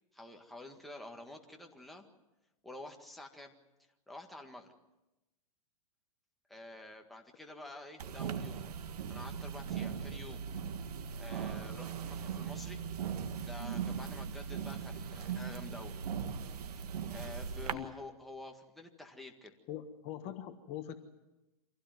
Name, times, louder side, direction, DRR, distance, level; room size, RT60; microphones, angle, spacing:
voice 1, 0.1-2.1 2.6-3.5 4.1-4.7 6.5-8.6 9.1-10.4 11.2-12.8 13.4-15.9 17.1-19.5, left 2 dB, ahead, 1 dB, 1.8 m, -49 dB
sound 1, 8.0-17.7, right 7 dB, 80° right, 1.8 m, -39 dB
voice 2, 19.7-21.0, left 11 dB, 30° left, 7 dB, 1.4 m, -42 dB
25.5 x 16.5 x 9.4 m, 0.99 s
hypercardioid pair, 150°, 20 cm